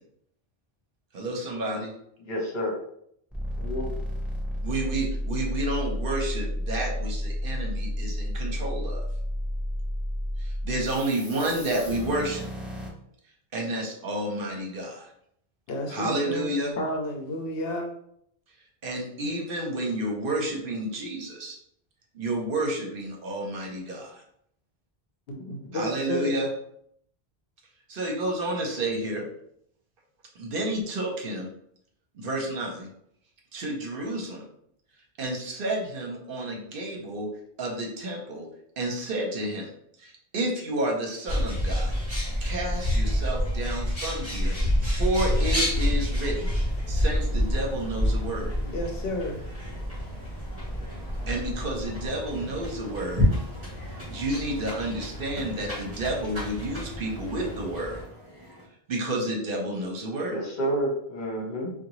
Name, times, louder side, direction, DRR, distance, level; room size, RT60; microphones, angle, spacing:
voice 1, 1.1-1.9 4.6-9.0 10.4-12.5 13.5-15.1 15.9-16.7 18.8-21.6 22.1-24.2 25.7-26.5 27.9-29.2 30.3-31.5 32.1-32.9 33.5-34.4 35.2-37.3 37.6-38.5 38.8-39.7 40.0-41.9 42.4-44.5 44.8-46.5 46.9-48.5 51.3-53.3 54.1-58.0 58.9-60.4, right 1 dB, 65° right, 1 dB, 0.8 m, -30 dB
voice 2, 2.2-2.7 3.6-3.9 60.3-61.7, equal, 50° left, -2 dB, 1.0 m, -29 dB
sound 1, 3.3-12.9, equal, ahead, 0.4 m, -31 dB
voice 3, 15.7-17.9 25.3-26.4 48.6-49.4, left 1 dB, 70° left, 2 dB, 0.8 m, -32 dB
Bird, 41.3-58.0, equal, 25° right, 1.6 m, -28 dB
sound 2, 45.2-58.7, equal, 20° left, 0.8 m, -49 dB
3.6 x 2.2 x 3.0 m, 0.69 s
omnidirectional pair, 1.0 m